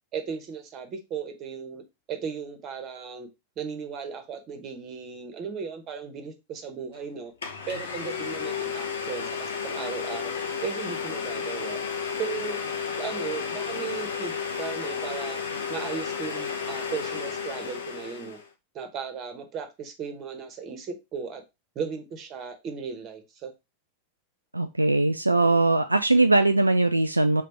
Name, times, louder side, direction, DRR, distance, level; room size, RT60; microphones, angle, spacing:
voice 1, 0.1-1.8 2.1-3.3 3.6-7.3 7.7-10.3 10.6-11.8 12.2-12.6 13.0-15.4 15.7-18.4 18.7-21.4 21.7-23.5, right 6 dB, 35° right, 1.1 m, -36 dB
Domestic sounds home sounds, 6.9-7.0 7.4-18.5, left 6 dB, 65° left, 0.8 m, -32 dB
voice 2, 24.5-27.4, right 2 dB, 85° right, 0.3 m, -21 dB
3.7 x 3.3 x 4.3 m
figure-of-eight pair, 90°, 0 cm